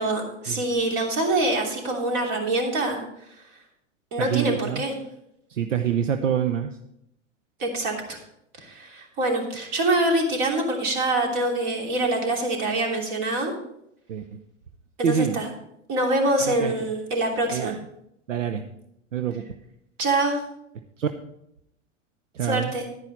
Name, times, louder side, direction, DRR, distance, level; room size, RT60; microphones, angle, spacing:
voice 1, 0.0-3.0 4.1-4.9 7.6-8.2 8.6-13.5 15.0-15.5 15.9-17.7 20.0-20.4 22.4-22.9, right 2 dB, 45° right, 1 dB, 3.2 m, -25 dB
voice 2, 4.2-4.8 5.5-6.7 14.1-14.4 15.0-15.4 16.4-16.7 17.5-17.8 18.3-18.6 19.1-19.4 21.0-21.1 22.3-22.7, right 8 dB, 75° right, 8 dB, 0.7 m, -26 dB
11.5 x 9.7 x 4.2 m, 0.77 s
figure-of-eight pair, 90°, 37 cm